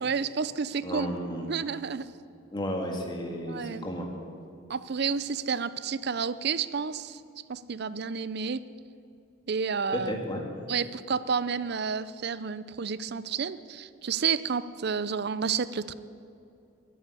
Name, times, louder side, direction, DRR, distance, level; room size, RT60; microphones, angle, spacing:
voice 1, 0.0-1.1 1.4-2.1 3.5-3.9 4.7-7.2 7.5-8.7 9.5-10.2 10.7-15.9, right 6 dB, 55° right, 16 dB, 0.5 m, -30 dB
voice 2, 0.8-1.5 2.5-4.1 9.9-10.4, equal, 20° left, 2 dB, 2.0 m, -33 dB
14.0 x 9.1 x 9.8 m, 2.6 s
head